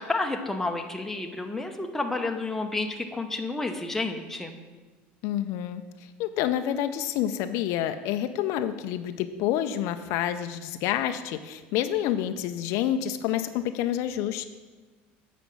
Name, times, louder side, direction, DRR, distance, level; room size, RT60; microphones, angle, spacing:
voice 1, 0.1-4.6, left 3 dB, 5° left, 4 dB, 0.9 m, -30 dB
voice 2, 5.2-14.4, left 11 dB, 65° left, 10 dB, 0.5 m, -28 dB
8.0 x 5.0 x 7.0 m, 1.3 s
supercardioid pair, 110°, 5 cm